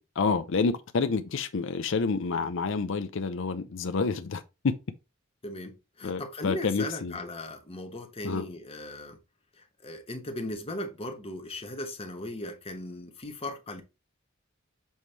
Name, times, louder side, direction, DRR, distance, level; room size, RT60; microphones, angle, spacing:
voice 1, 0.0-4.8 6.0-7.2 8.2-8.5, left 4 dB, 65° left, 0.5 m, -29 dB
voice 2, 5.4-9.2 9.6-13.8, left 1 dB, 30° left, 1.1 m, -38 dB
7.1 x 3.2 x 4.2 m
head